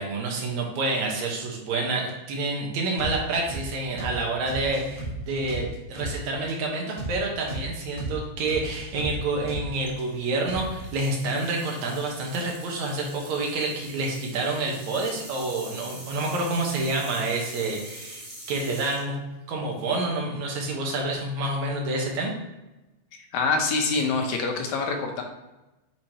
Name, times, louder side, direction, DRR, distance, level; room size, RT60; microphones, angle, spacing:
voice 1, 0.0-19.1 19.5-22.4, right 2 dB, 75° right, 0 dB, 2.5 m, -28 dB
sound 1, 3.0-3.2 3.5-3.7 4.0-4.2 4.5-6.2 6.5-6.6 7.0-7.2 7.5-7.7 8.0-8.2 8.5-10.0 10.5-10.9, right 1 dB, 25° left, 1.7 m, -34 dB
sound 2, 9.8-20.0, right 1 dB, 25° right, 0.6 m, -44 dB
voice 2, 23.3-25.2, left 4 dB, 80° left, 3 dB, 2.3 m, -25 dB
8.4 x 4.4 x 2.9 m, 1.0 s
omnidirectional pair, 3.3 m